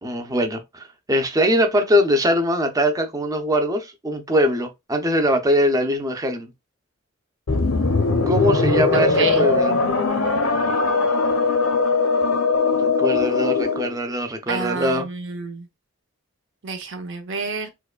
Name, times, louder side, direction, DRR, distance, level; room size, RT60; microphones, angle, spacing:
voice 1, 0.0-6.5 8.3-9.7 12.8-15.1, equal, 15° right, 0.5 m, -22 dB
sound 1, 7.5-14.0, left 4 dB, 90° left, 0.8 m, -20 dB
voice 2, 8.9-9.4 14.5-15.7 16.6-17.7, right 4 dB, 60° right, 0.8 m, -29 dB
4.7 x 2.2 x 2.3 m
head